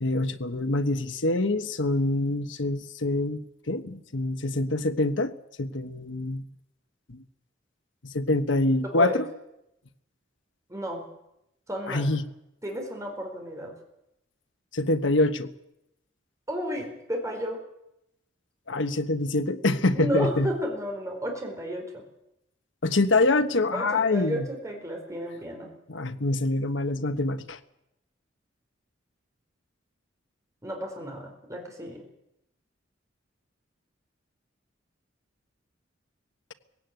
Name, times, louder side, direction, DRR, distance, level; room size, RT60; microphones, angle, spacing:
voice 1, 0.0-5.3 5.6-6.4 7.1-7.2 8.0-9.3 11.9-12.2 14.7-15.5 18.7-20.5 22.8-24.5 25.9-27.6, left 2 dB, 75° left, 10 dB, 1.3 m, -25 dB
voice 2, 8.8-9.2 10.7-11.0 11.7-12.0 12.6-13.7 16.5-17.6 19.9-22.0 23.7-25.7 30.6-32.0, equal, 15° right, 1 dB, 4.3 m, -32 dB
19.0 x 16.5 x 9.3 m, 0.86 s
head